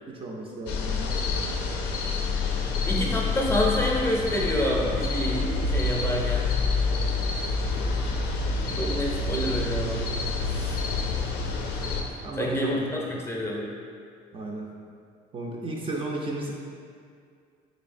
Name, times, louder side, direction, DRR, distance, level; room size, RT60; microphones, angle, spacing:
voice 1, 0.1-1.1 12.2-12.8 14.3-14.7 15.3-16.5, right 2 dB, 35° right, -2 dB, 0.4 m, -34 dB
sound 1, 0.7-12.0, left 4 dB, 85° left, 0.4 m, -27 dB
sound 2, 2.5-12.0, right 3 dB, 80° right, 0.7 m, -42 dB
voice 2, 2.8-6.5 8.6-10.0 10.5-10.8 12.4-13.7, left 1 dB, 15° left, -3 dB, 0.6 m, -28 dB
4.1 x 3.1 x 2.5 m, 2.2 s
cardioid pair, 110°, 17 cm